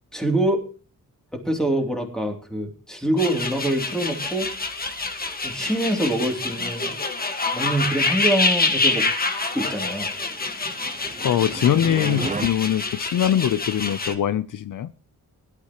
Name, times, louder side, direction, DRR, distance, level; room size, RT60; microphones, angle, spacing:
voice 1, 0.1-0.6 1.3-4.5 5.4-6.9 7.5-9.0 9.4-10.1, right 1 dB, ahead, 2.9 m, -25 dB
sound 1, 3.2-14.1, left 3 dB, 25° left, 1.5 m, -27 dB
sound 2, 10.5-12.5, right 3 dB, 20° right, 0.9 m, -32 dB
voice 2, 11.2-14.9, left 10 dB, 65° left, 0.6 m, -22 dB
21.5 x 12.0 x 3.0 m
wide cardioid pair, 165°, 34 cm